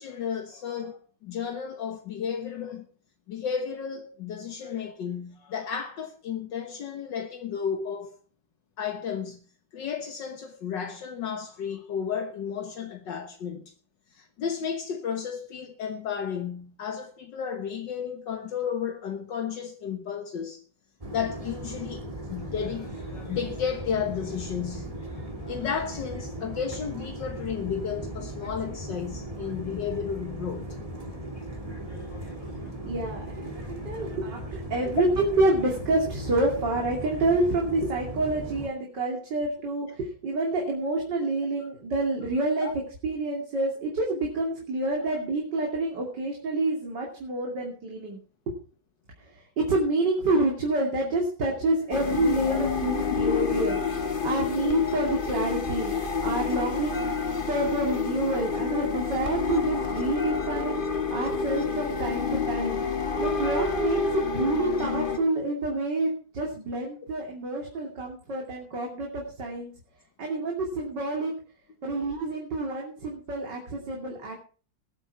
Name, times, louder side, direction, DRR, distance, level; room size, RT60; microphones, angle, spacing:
voice 1, 0.0-2.9 3.3-8.2 8.8-9.4 9.7-13.7 14.1-20.6 21.1-30.8 31.9-32.7 41.6-41.7 42.6-42.7 52.5-52.6 54.9-55.0 60.3-60.4, left 7 dB, 70° left, 1.8 m, -33 dB
sound 1, 21.0-38.7, right 1 dB, 20° right, 2.3 m, -37 dB
voice 2, 32.8-42.7 43.0-48.2 48.5-48.6 49.2-57.2 57.5-60.8 61.1-62.8 63.2-69.7 70.2-71.3 71.8-74.4, right 2 dB, 65° right, 3.3 m, -28 dB
sound 2, 51.9-65.2, left 5 dB, 30° left, 1.4 m, -28 dB
20.0 x 8.2 x 4.7 m
omnidirectional pair, 2.0 m